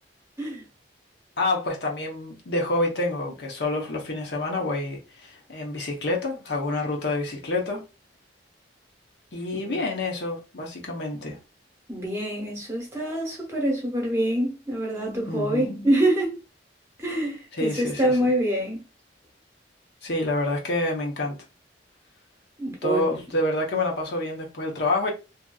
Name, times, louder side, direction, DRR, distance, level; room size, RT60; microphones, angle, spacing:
voice 1, 1.4-7.8 9.3-11.4 15.3-15.8 17.5-18.3 20.0-21.4 22.8-25.1, left 2 dB, 65° left, 0.8 m, -28 dB
voice 2, 11.9-16.4 17.0-18.8 22.6-23.1, right 1 dB, 15° right, 0.9 m, -25 dB
2.8 x 2.5 x 2.3 m
head